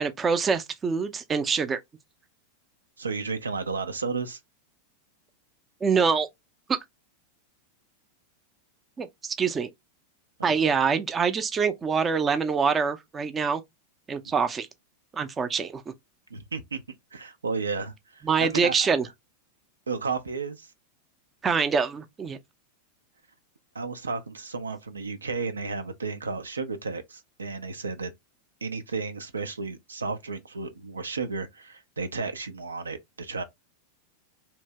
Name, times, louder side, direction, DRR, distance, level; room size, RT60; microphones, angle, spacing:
voice 1, 0.0-1.8 5.8-6.3 6.7-6.8 9.0-9.7 10.4-13.6 14.1-14.7 15.1-15.9 18.2-19.1 21.4-22.4, right 5 dB, 20° right, 0.5 m, -25 dB
voice 2, 3.0-4.4 10.4-10.8 16.3-16.8 17.1-18.8 19.9-20.7 23.7-28.1 28.6-33.4, right 4 dB, 75° right, 0.4 m, -33 dB
2.9 x 2.6 x 3.2 m
figure-of-eight pair, 90°, 0 cm